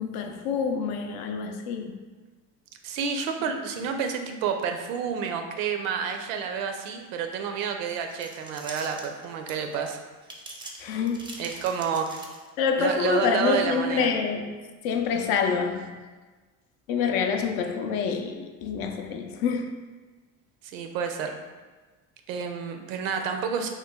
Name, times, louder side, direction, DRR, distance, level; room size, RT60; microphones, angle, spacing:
voice 1, 0.0-2.0 10.8-11.3 12.6-14.5 14.8-16.0 16.9-19.8, left 6 dB, 65° left, 5 dB, 0.5 m, -27 dB
voice 2, 2.8-10.0 11.4-12.2 12.8-14.1 20.6-21.3 22.3-23.7, right 6 dB, 85° right, 5 dB, 0.5 m, -29 dB
sound 1, 7.8-9.8 10.2-12.7, right 2 dB, 15° right, 0.4 m, -43 dB
3.0 x 2.2 x 3.5 m, 1.3 s
supercardioid pair, 85°, 38 cm